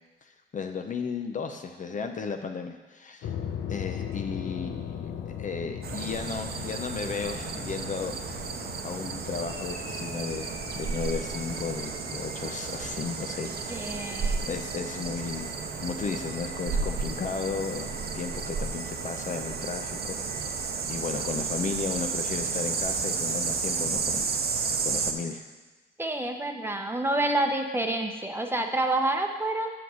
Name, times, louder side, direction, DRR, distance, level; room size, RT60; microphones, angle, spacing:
voice 1, 0.2-3.3 3.7-8.4 8.8-14.0 14.5-15.5 15.8-20.6 20.9-24.3 24.6-25.5, left 5 dB, 40° left, 6 dB, 0.7 m, -35 dB
sound 1, 3.2-18.4, left 8 dB, 75° left, 0.8 m, -41 dB
sound 2, 5.8-25.1, right 5 dB, 50° right, 0.8 m, -32 dB
sound 3, 9.4-21.4, left 2 dB, 55° left, 2.0 m, -48 dB
voice 2, 13.7-14.4 26.0-29.7, right 2 dB, 10° right, 3 dB, 0.9 m, -28 dB
7.0 x 5.8 x 6.4 m, 1.3 s
cardioid pair, 90°, 20 cm